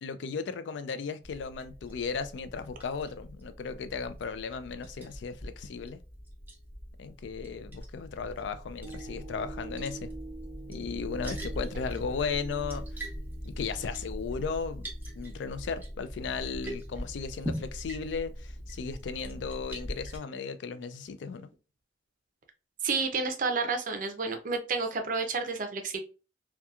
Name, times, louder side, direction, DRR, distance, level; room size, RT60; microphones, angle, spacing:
voice 1, 0.0-6.0 7.0-10.1 10.7-13.1 13.5-14.8 15.1-21.5, left 5 dB, 85° left, 0.3 m, -36 dB
Liquid, 1.2-20.2, equal, 10° right, 0.9 m, -41 dB
sound 1, 8.8-17.2 17.7-17.8, right 3 dB, 60° left, 1.1 m, -48 dB
voice 2, 22.8-26.0, right 4 dB, 50° right, 0.5 m, -30 dB
2.8 x 2.3 x 2.3 m
head